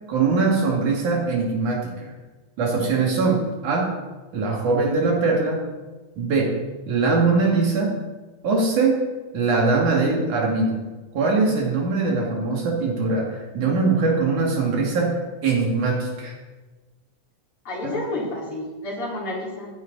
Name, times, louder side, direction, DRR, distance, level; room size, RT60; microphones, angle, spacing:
voice 1, 0.1-2.1 2.6-3.9 4.3-5.6 6.2-6.6 6.9-8.0 8.4-9.0 9.3-10.8 11.1-16.3 17.8-17.9, right 3 dB, 85° right, -1 dB, 4.0 m, -22 dB
voice 2, 17.6-19.7, left 2 dB, 45° left, -4 dB, 4.2 m, -30 dB
14.5 x 11.5 x 4.1 m, 1.2 s
omnidirectional pair, 3.4 m